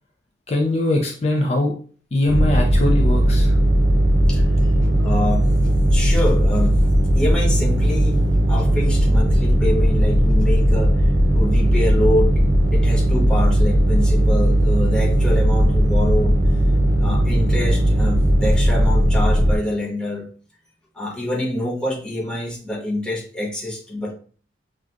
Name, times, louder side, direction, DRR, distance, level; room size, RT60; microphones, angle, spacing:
voice 1, 0.5-1.7 2.1-3.6, left 1 dB, 35° left, 1 dB, 0.5 m, -21 dB
sound 1, 2.3-19.6, equal, 60° right, 0.7 m, -17 dB
voice 2, 5.0-5.6 5.9-6.9 7.1-8.2 8.5-11.1 11.3-16.4 17.0-20.3 20.9-24.1, left 1 dB, 5° left, -3 dB, 0.8 m, -26 dB
5.9 x 2.3 x 2.5 m, 0.42 s
head